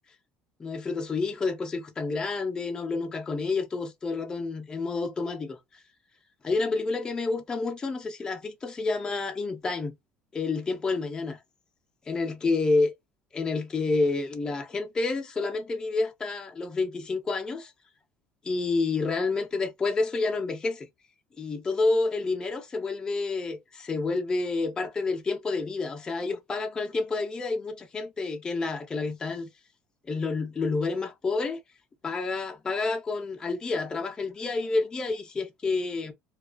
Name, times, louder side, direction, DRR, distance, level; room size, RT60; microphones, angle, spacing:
voice 1, 0.6-5.6 6.4-10.0 10.3-11.4 12.1-12.9 13.3-17.7 18.4-20.9 21.4-29.5 30.1-31.6 32.0-36.1, left 3 dB, 15° left, 0.5 m, -29 dB
2.3 x 2.2 x 2.4 m
cardioid pair, 145°, 4 cm